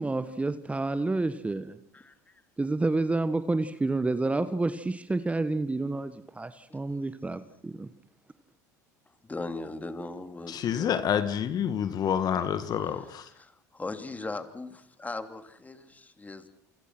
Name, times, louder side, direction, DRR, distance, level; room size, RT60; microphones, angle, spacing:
voice 1, 0.0-1.8 2.6-7.9, right 2 dB, 15° right, 12 dB, 1.4 m, -29 dB
voice 2, 1.9-2.4 6.7-6.8 9.2-11.0 13.3-16.5, left 3 dB, 15° left, 8 dB, 3.2 m, -39 dB
voice 3, 10.5-13.3, left 8 dB, 45° left, 11 dB, 1.9 m, -28 dB
28.0 x 26.0 x 6.2 m, 0.72 s
hypercardioid pair, 70°, 9 cm